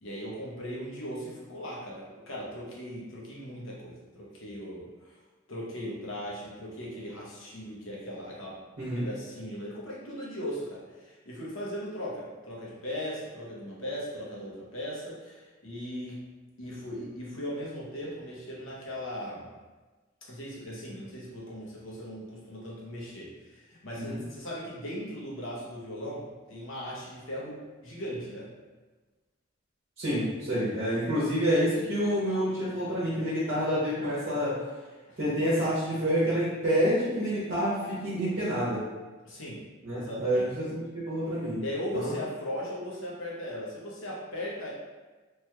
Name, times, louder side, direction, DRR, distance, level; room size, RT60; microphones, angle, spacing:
voice 1, 0.0-5.2 5.5-8.6 8.9-16.2 16.6-19.5 20.2-28.5 35.1-35.2 39.2-39.6 39.9-40.4 41.6-44.7, equal, 70° left, -5 dB, 0.9 m, -38 dB
voice 2, 30.0-34.6 35.2-38.8 39.8-41.6 41.9-42.1, equal, 50° right, -9 dB, 0.9 m, -28 dB
3.2 x 2.9 x 2.2 m, 1.3 s
head